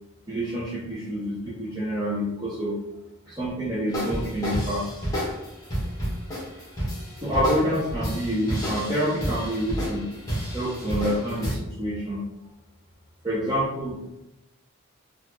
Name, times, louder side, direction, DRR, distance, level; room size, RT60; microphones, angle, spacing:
voice 1, 0.3-2.8 3.3-4.9 7.2-10.1 10.5-12.2 13.2-14.0, equal, 15° right, -7 dB, 0.5 m, -27 dB
sound 1, 3.9-11.5, equal, 15° left, 1.2 m, -30 dB
4.0 x 2.3 x 2.9 m, 0.90 s
head